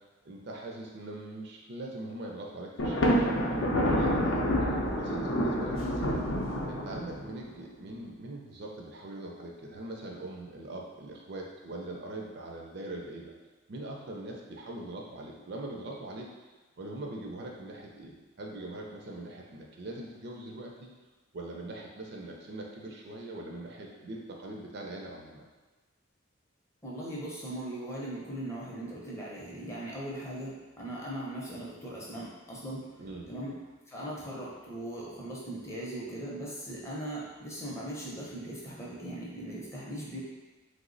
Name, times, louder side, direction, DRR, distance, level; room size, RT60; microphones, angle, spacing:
voice 1, 0.3-4.5 4.9-6.3 6.7-13.3 13.7-16.3 16.8-20.9 21.3-25.5 33.0-33.3, right 2 dB, 55° right, -1 dB, 0.4 m, -42 dB
Thunder, 2.8-7.4, equal, 70° left, 0.5 m, -28 dB
voice 2, 26.8-32.9 33.3-33.6 33.9-40.2, right 1 dB, 15° left, -6 dB, 0.5 m, -39 dB
3.1 x 2.0 x 3.8 m, 1.2 s
head